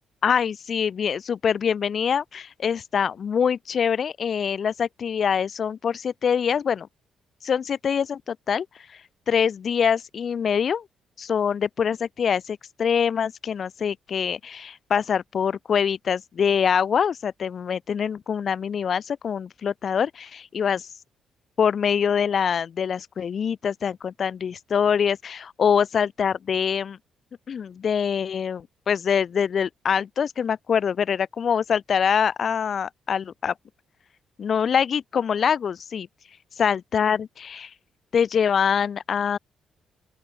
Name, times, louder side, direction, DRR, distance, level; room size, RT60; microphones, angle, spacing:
voice 1, 0.2-6.9 7.4-8.7 9.3-10.8 11.2-20.9 21.6-27.0 27.5-33.5 34.4-36.1 36.6-37.7 38.1-39.4, left 7 dB, 45° left, 1.8 m, -24 dB
open air
cardioid pair, 120°, 0 cm